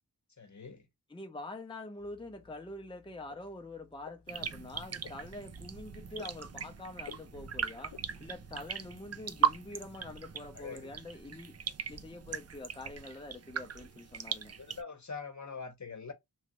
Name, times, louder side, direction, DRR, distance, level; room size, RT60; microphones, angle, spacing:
voice 1, 0.4-0.9 10.5-10.9 14.6-16.1, left 5 dB, 45° left, 1.0 m, -43 dB
voice 2, 1.1-7.9 8.2-11.6 11.9-14.5, left 2 dB, 15° left, 0.6 m, -45 dB
sound 1, 2.0-10.3, left 7 dB, 90° left, 0.6 m, -57 dB
sound 2, 4.3-14.8, right 7 dB, 40° right, 0.4 m, -38 dB
3.1 x 2.5 x 2.9 m
wide cardioid pair, 55°, 40 cm